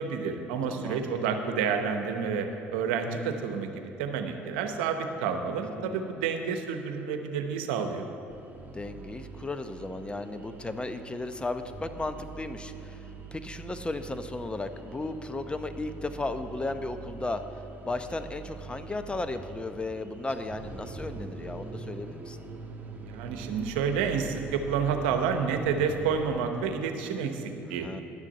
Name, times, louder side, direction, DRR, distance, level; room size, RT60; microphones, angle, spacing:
voice 1, 0.0-8.0 23.0-27.9, right 6 dB, 80° right, 6 dB, 0.9 m, -29 dB
voice 2, 0.7-1.1 5.8-6.2 8.7-13.0 13.3-17.4 17.8-22.4 27.8-28.0, left 2 dB, 20° left, 9 dB, 0.7 m, -35 dB
sound 1, 8.3-26.4, right 4 dB, 30° right, 1.8 m, -44 dB
11.0 x 7.4 x 6.5 m, 2.9 s
hypercardioid pair, 65°, 6 cm